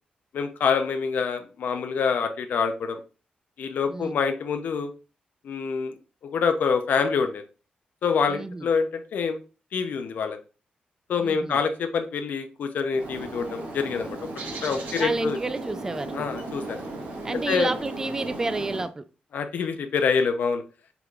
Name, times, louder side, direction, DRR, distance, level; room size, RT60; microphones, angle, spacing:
voice 1, 0.3-3.0 3.6-4.9 5.4-6.0 6.2-7.4 8.0-9.4 9.7-10.4 11.1-14.2 14.6-15.4 16.1-16.8 17.5-17.7 19.3-20.6, left 5 dB, 70° left, 7 dB, 0.6 m, -26 dB
voice 2, 3.9-4.2 8.3-8.7 11.2-11.6 14.9-16.2 17.2-19.0, right 3 dB, 20° right, 12 dB, 0.4 m, -30 dB
Bird, 12.9-18.9, right 2 dB, 90° right, 1.7 m, -36 dB
5.8 x 3.8 x 2.4 m, 0.33 s
wide cardioid pair, 150°, 3 cm